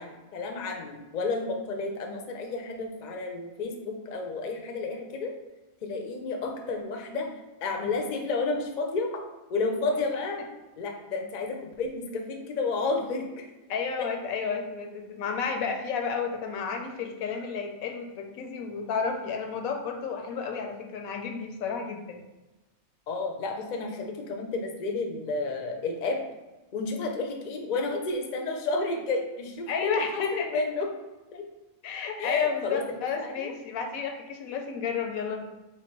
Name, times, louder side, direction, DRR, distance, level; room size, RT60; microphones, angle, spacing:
voice 1, 0.0-5.3 5.8-7.3 7.6-9.1 9.5-10.4 10.8-13.3 23.1-26.2 26.7-30.9 31.3-31.4 32.2-32.8 33.2-33.5, left 3 dB, 50° left, 2 dB, 0.5 m, -31 dB
voice 2, 13.7-22.2 29.7-30.6 31.8-35.4, left 6 dB, 85° left, 4 dB, 1.1 m, -31 dB
3.1 x 3.0 x 4.5 m, 1.1 s
omnidirectional pair, 1.4 m